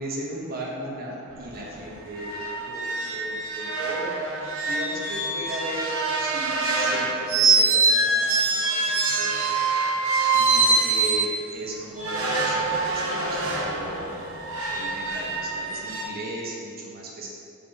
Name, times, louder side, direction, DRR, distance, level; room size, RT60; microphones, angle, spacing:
voice 1, 0.0-9.3 10.3-14.3 14.7-17.3, right 1 dB, 45° right, -3 dB, 1.0 m, -36 dB
sound 1, 1.3-1.4 1.7-1.9 2.1-11.3 12.0-16.0, right 3 dB, 80° right, 1.1 m, -24 dB
5.5 x 5.1 x 4.1 m, 2.4 s
head